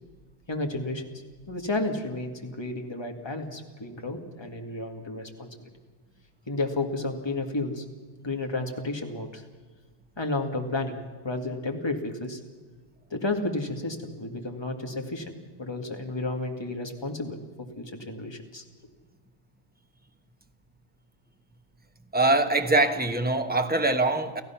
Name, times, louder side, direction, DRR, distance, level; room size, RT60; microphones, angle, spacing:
voice 1, 0.5-1.0 1.5-5.7 6.5-7.8 8.2-9.4 10.2-11.0 11.2-12.4 13.1-18.6, left 2 dB, 15° left, 3 dB, 1.8 m, -32 dB
voice 2, 22.1-24.4, right 2 dB, 10° right, 5 dB, 0.6 m, -23 dB
30.0 x 15.0 x 5.8 m, 1.4 s
omnidirectional pair, 2.2 m